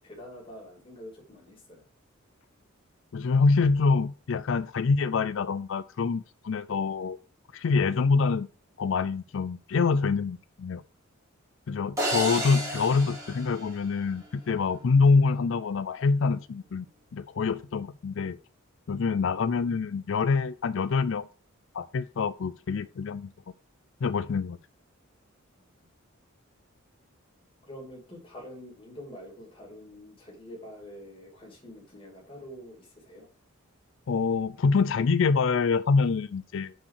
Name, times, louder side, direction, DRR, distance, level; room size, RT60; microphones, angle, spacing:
voice 1, 0.0-1.8 25.7-25.9 27.7-33.3, equal, 25° left, 2.6 m, -46 dB
voice 2, 3.1-7.2 7.5-8.5 8.8-10.8 11.7-16.9 17.1-18.4 18.9-21.3 21.7-23.3 24.0-24.6 34.1-36.7, left 4 dB, 60° left, 0.4 m, -25 dB
sound 1, 12.0-14.3, right 1 dB, 15° right, 2.5 m, -32 dB
5.5 x 5.3 x 6.6 m
head